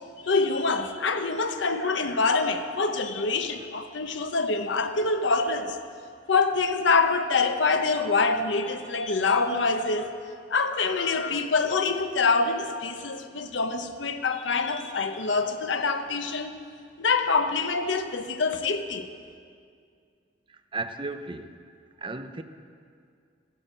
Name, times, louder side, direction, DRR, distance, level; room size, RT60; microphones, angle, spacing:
voice 1, 0.2-5.8 6.3-10.2 10.5-16.6 17.0-19.1, left 4 dB, 75° left, 8 dB, 0.9 m, -25 dB
voice 2, 20.7-21.5 22.0-22.4, right 3 dB, 25° right, 8 dB, 0.6 m, -34 dB
15.5 x 9.4 x 7.9 m, 2.2 s
head